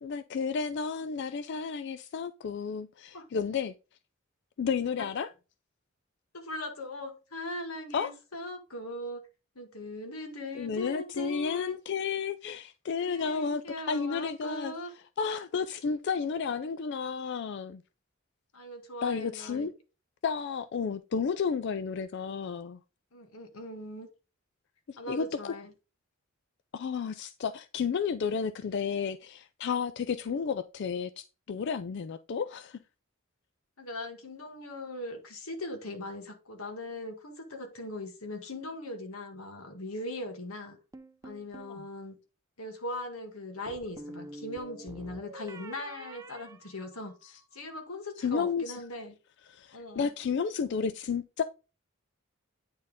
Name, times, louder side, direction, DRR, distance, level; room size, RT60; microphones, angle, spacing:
voice 1, 0.0-3.7 4.6-5.3 7.9-8.1 10.5-13.6 13.9-14.7 15.2-17.8 19.0-19.7 20.2-22.8 24.9-25.6 26.7-32.8 41.7-41.8 47.2-47.3 48.2-48.8 49.5-51.4, left 6 dB, 55° left, 0.4 m, -32 dB
voice 2, 6.3-9.3 9.6-11.7 13.0-14.9 18.5-19.7 23.1-24.1 25.0-25.7 33.8-40.8 41.2-42.2 42.6-49.2 49.7-50.1, left 1 dB, 85° left, 1.7 m, -40 dB
sound 1, 40.9-41.8 43.7-47.4, right 1 dB, 15° right, 0.5 m, -47 dB
9.3 x 4.4 x 3.6 m
head